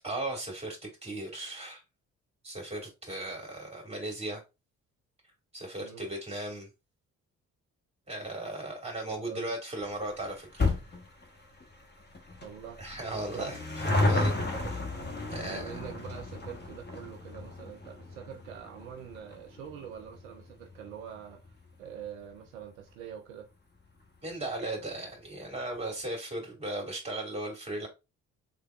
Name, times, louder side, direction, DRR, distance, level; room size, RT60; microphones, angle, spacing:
voice 1, 0.0-1.8 2.4-4.4 5.5-6.7 8.1-10.7 12.8-13.6 13.9-14.7 15.3-15.8 24.2-27.9, right 1 dB, 15° right, 2.1 m, -37 dB
voice 2, 9.1-9.5 12.4-12.8 13.3-13.6 14.6-14.9 15.3-23.4, right 8 dB, 75° right, 0.6 m, -45 dB
sound 1, 9.8-22.6 22.9-23.0 23.8-23.9 24.1-24.2 24.5-24.6, left 2 dB, 25° left, 1.1 m, -34 dB
3.5 x 3.3 x 2.3 m
figure-of-eight pair, 40°, 41 cm